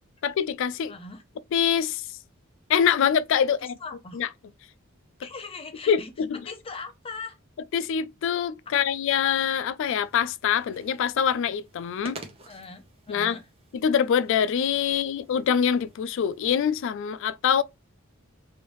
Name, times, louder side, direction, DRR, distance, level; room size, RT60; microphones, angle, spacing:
voice 1, 0.2-0.9 1.5-2.1 2.7-3.7 4.1-4.3 5.9-6.3 7.7-12.2 13.1-13.4 13.7-17.6, left 8 dB, 65° left, 0.3 m, -24 dB
voice 2, 0.9-1.2 3.6-4.2 5.2-6.1 6.4-7.4 12.5-13.5, left 4 dB, 25° left, 0.7 m, -40 dB
sound 1, 9.8-16.8, right 2 dB, 30° right, 0.7 m, -50 dB
3.3 x 2.6 x 3.0 m
head